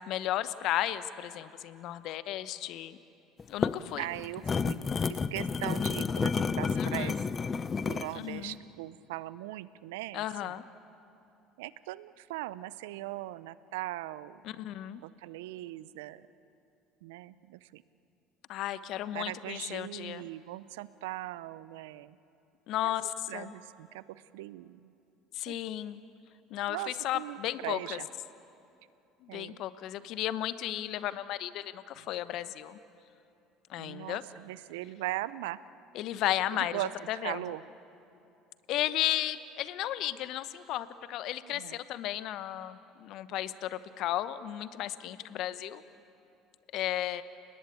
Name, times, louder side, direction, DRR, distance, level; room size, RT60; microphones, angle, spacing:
voice 1, 0.0-3.0 3.5-4.0 6.7-7.1 8.1-8.5 10.1-10.6 14.4-15.0 18.5-20.2 22.7-23.5 25.3-26.0 26.5-28.0 29.2-32.8 33.7-34.2 35.9-36.8 37.1-37.4 38.7-45.8 46.7-47.2, left 13 dB, 60° left, 14 dB, 1.0 m, -34 dB
sound 1, 3.4-8.2, left 5 dB, 30° left, 0.9 m, -30 dB
voice 2, 4.0-7.2 7.9-10.6 11.6-14.4 15.0-16.3 17.0-17.8 19.1-22.2 22.8-22.9 23.3-24.9 25.5-25.6 26.7-28.1 29.3-29.6 33.8-35.6 36.5-36.9 37.2-37.6 41.4-41.8, right 17 dB, 75° right, 18 dB, 0.6 m, -40 dB
30.0 x 20.0 x 8.5 m, 2.7 s
hypercardioid pair, 65°, 0 cm